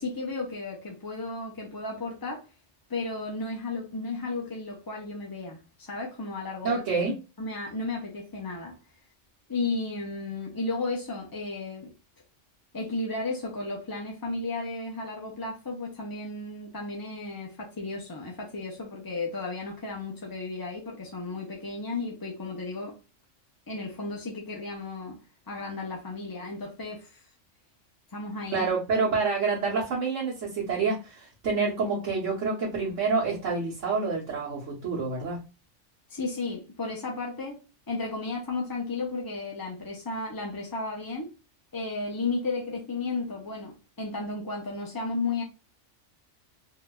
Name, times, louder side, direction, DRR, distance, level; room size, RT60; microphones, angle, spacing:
voice 1, 0.0-2.4 2.9-6.8 7.4-8.8 9.5-11.9 12.7-23.0 23.7-25.2 25.5-27.2 28.1-28.7 36.1-41.3 41.7-45.4, left 3 dB, 25° left, 0.5 m, -34 dB
voice 2, 6.6-7.1 28.5-35.4, right 4 dB, 85° right, 1.4 m, -27 dB
3.8 x 2.6 x 2.2 m
omnidirectional pair, 1.3 m